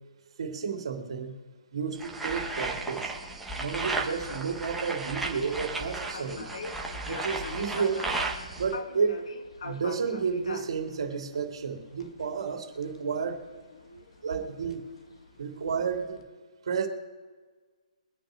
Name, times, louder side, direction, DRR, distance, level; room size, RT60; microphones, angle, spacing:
voice 1, 0.4-1.3 1.7-3.1 3.5-6.5 7.1-8.0 8.6-9.2 9.6-13.4 14.2-14.8 15.4-16.2 16.7-16.9, right 5 dB, 50° right, 1 dB, 2.9 m, -31 dB
sound 1, 2.0-8.7, right 3 dB, ahead, 0.7 m, -34 dB
sound 2, 5.8-16.2, left 4 dB, 50° left, 1.1 m, -44 dB
24.0 x 8.8 x 3.3 m, 1.5 s
hypercardioid pair, 180°, 4 cm